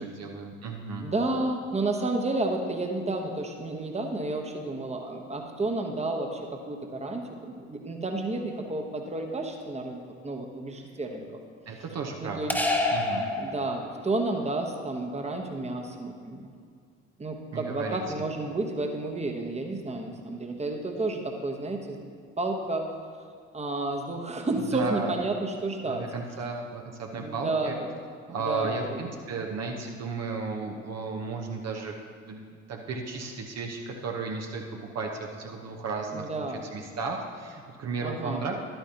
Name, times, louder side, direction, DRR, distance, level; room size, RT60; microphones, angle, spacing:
voice 1, 0.0-1.1 11.7-12.6 12.9-13.3 17.5-18.0 24.4-25.1 25.9-27.8 28.3-31.9 32.2-34.6 34.9-38.6, right 4 dB, 50° right, 0 dB, 1.0 m, -34 dB
voice 2, 1.0-6.4 6.7-11.2 12.2-12.5 13.4-16.5 17.2-22.0 22.4-22.9 23.5-26.1 27.1-28.0 28.4-29.0 36.1-36.7 38.0-38.4, right 2 dB, 20° right, 3 dB, 1.2 m, -31 dB
sound 1, 12.5-14.2, left 2 dB, 5° left, 1.3 m, -28 dB
11.5 x 9.0 x 2.9 m, 2.1 s
hypercardioid pair, 50°, 34 cm